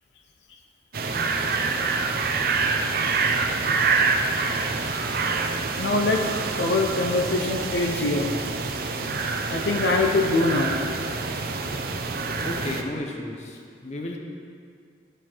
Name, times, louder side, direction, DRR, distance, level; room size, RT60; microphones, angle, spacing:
sound 1, 0.9-12.8, right 4 dB, 55° right, 0.6 m, -26 dB
voice 1, 5.8-6.3 6.6-8.3 9.5-10.8, left 2 dB, 70° left, 2 dB, 0.7 m, -23 dB
voice 2, 12.5-14.2, left 1 dB, 40° left, 1 dB, 0.9 m, -33 dB
12.5 x 4.5 x 4.5 m, 2.2 s
head